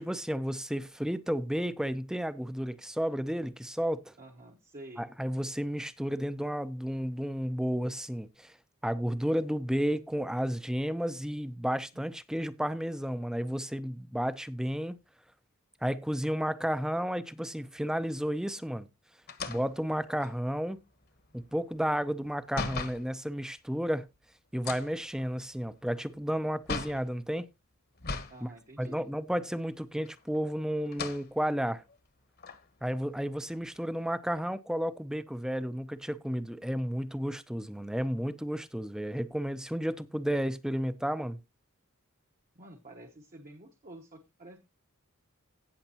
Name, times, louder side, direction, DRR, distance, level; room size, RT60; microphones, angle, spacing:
voice 1, 0.0-4.1 5.0-8.5 8.8-15.0 15.8-18.9 19.5-20.8 21.3-24.1 24.5-27.5 28.4-28.5 28.8-31.8 32.8-41.4, equal, 5° right, 0.6 m, -32 dB
voice 2, 4.2-5.0 11.9-12.0 28.3-29.0 42.5-44.6, right 1 dB, 40° right, 1.1 m, -49 dB
sound 1, 19.3-23.1 24.5-27.1 28.0-28.4 28.8-28.9 30.0-30.5 30.9-31.3 31.9-32.0 32.4-33.8, left 4 dB, 45° left, 1.2 m, -39 dB
17.0 x 6.5 x 2.9 m
head